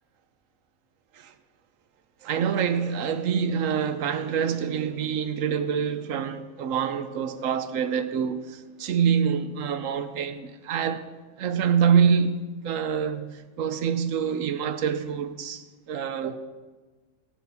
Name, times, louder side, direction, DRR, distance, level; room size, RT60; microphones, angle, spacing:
voice 1, 2.2-11.1 11.4-16.4, right 7 dB, 70° right, 1.1 m, -26 dB
17.0 x 6.1 x 7.0 m
omnidirectional pair, 1.5 m